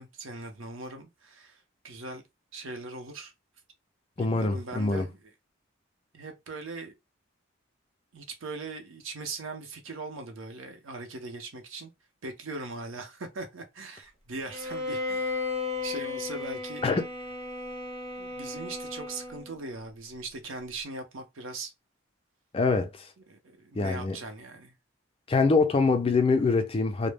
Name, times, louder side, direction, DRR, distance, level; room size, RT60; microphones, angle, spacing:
voice 1, 0.0-1.6 1.8-2.2 2.5-3.3 4.2-5.2 6.1-6.9 8.1-11.9 12.2-15.4 15.8-16.8 18.2-21.7 23.3-24.7, right 3 dB, 75° right, 0.6 m, -40 dB
voice 2, 4.2-5.1 16.8-17.1 22.5-23.1 23.8-24.2 25.3-27.1, left 3 dB, 25° left, 0.3 m, -24 dB
Bowed string instrument, 14.5-19.6, left 3 dB, 30° right, 0.5 m, -35 dB
2.1 x 2.0 x 3.2 m
head